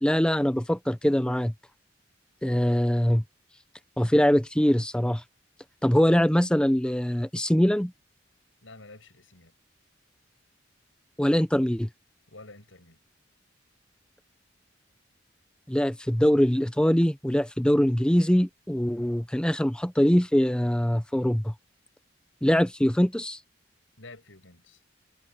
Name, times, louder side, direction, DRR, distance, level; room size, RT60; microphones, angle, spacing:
voice 1, 0.0-1.5 2.4-3.2 4.0-5.2 5.8-7.9 11.2-11.9 15.7-21.5 22.4-23.4, equal, 5° left, 0.6 m, -23 dB
voice 2, 8.6-9.5 12.3-13.0 24.0-24.8, left 2 dB, 90° left, 7.6 m, -49 dB
head